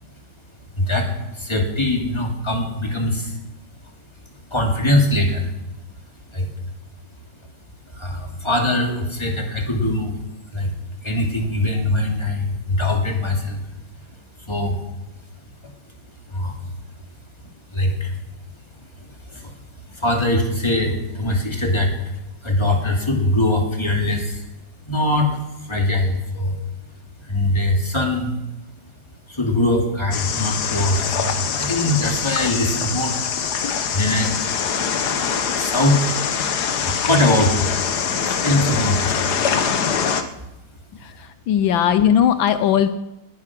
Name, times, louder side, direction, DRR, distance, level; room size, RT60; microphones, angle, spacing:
voice 1, 0.8-3.4 4.5-5.5 6.3-6.5 7.9-10.2 10.5-10.7 11.0-13.6 14.5-14.8 16.3-16.6 17.7-18.1 19.0-19.5 19.9-22.1 22.4-24.4 24.9-25.4 25.7-26.6 27.3-28.4 29.3-33.2 33.9-34.6 35.5-36.1 36.8-37.7 38.2-39.2, left 1 dB, 15° left, 1 dB, 2.6 m, -22 dB
sound 1, 30.1-40.2, left 7 dB, 60° left, 1.5 m, -23 dB
voice 2, 41.0-42.9, left 9 dB, 80° left, 11 dB, 1.4 m, -18 dB
19.5 x 9.7 x 6.1 m, 0.97 s
omnidirectional pair, 2.2 m